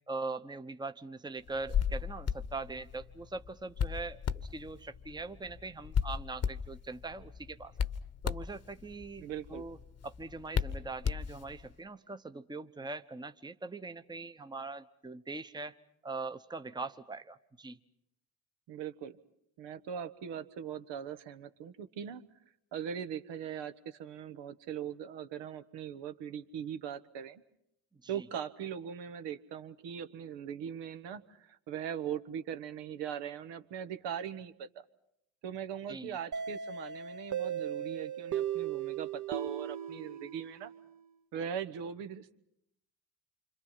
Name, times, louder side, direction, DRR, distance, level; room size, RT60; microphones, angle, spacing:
voice 1, 0.1-7.7 8.2-9.8 10.0-15.7 16.0-17.8 27.9-28.3 35.9-36.2, right 3 dB, 10° right, 10 dB, 1.0 m, -42 dB
Hands, 1.5-11.7, left 7 dB, 35° left, 1.1 m, -36 dB
voice 2, 9.2-9.6 18.7-19.2 19.6-22.2 22.7-27.4 28.1-34.7 35.4-40.7 41.3-42.4, right 8 dB, 65° right, 10 dB, 1.4 m, -40 dB
sound 1, 36.3-41.0, right 9 dB, 40° right, 1.3 m, -37 dB
28.0 x 25.5 x 5.7 m, 0.78 s
hypercardioid pair, 60°, 45 cm